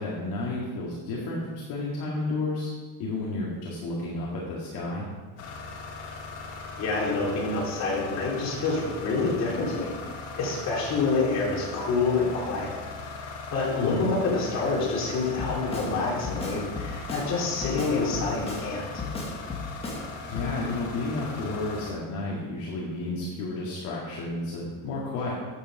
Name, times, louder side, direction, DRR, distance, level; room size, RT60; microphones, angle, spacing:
voice 1, 0.0-2.7 3.0-5.1 13.8-14.1 20.2-25.3, left 2 dB, 55° left, -5 dB, 2.2 m, -32 dB
sound 1, 5.4-21.9, left 3 dB, 80° left, 2.4 m, -39 dB
voice 2, 6.8-12.7 13.2-19.0, left 3 dB, 40° left, -4 dB, 3.2 m, -27 dB
Drum kit, 15.4-15.9 16.2-17.3 17.6-18.7 19.0-20.0 20.4-20.5, left 4 dB, 15° left, 1.7 m, -34 dB
8.9 x 8.5 x 4.9 m, 1.3 s
cardioid pair, 165°, 40 cm